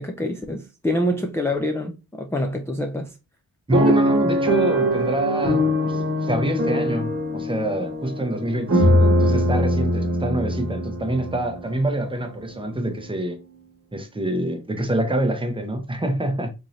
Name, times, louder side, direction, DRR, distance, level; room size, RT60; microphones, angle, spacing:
voice 1, 0.0-3.1 3.9-4.0, left 1 dB, 5° left, 0.3 m, -26 dB
voice 2, 3.7-13.4 13.9-16.5, right 1 dB, 15° right, 0.7 m, -26 dB
sound 1, 3.7-11.8 12.4-12.5 12.8-13.0, equal, 40° right, 1.1 m, -22 dB
3.7 x 2.7 x 3.0 m
wide cardioid pair, 145°, 37 cm